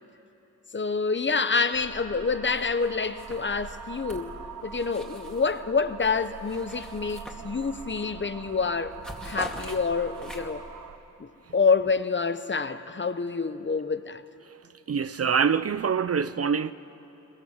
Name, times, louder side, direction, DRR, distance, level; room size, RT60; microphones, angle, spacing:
voice 1, 0.7-4.3 4.6-10.7 11.2-14.2, left 4 dB, 35° left, 0.8 m, -27 dB
sound 1, 1.7-11.0, right 6 dB, 90° right, 1.0 m, -43 dB
sound 2, 2.5-2.9 3.1-5.6 6.0-7.9 8.3-8.5 8.8-10.7, equal, ahead, 2.3 m, -43 dB
voice 2, 14.9-16.7, right 6 dB, 45° right, 0.5 m, -25 dB
22.5 x 21.5 x 7.4 m
wide cardioid pair, 80°, 33 cm